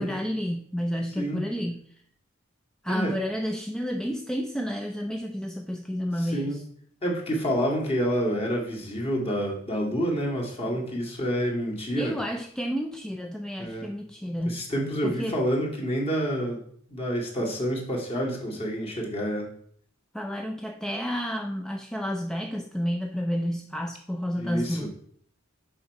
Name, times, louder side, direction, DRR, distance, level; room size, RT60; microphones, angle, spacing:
voice 1, 0.0-1.9 2.8-6.6 12.0-14.7 15.0-15.4 20.1-24.9, equal, 5° left, 3 dB, 0.4 m, -30 dB
voice 2, 6.3-6.6 7.0-12.1 13.6-13.9 14.4-16.6 16.9-19.5 24.4-24.9, equal, 30° left, -2 dB, 2.0 m, -28 dB
6.9 x 5.3 x 4.7 m, 0.62 s
head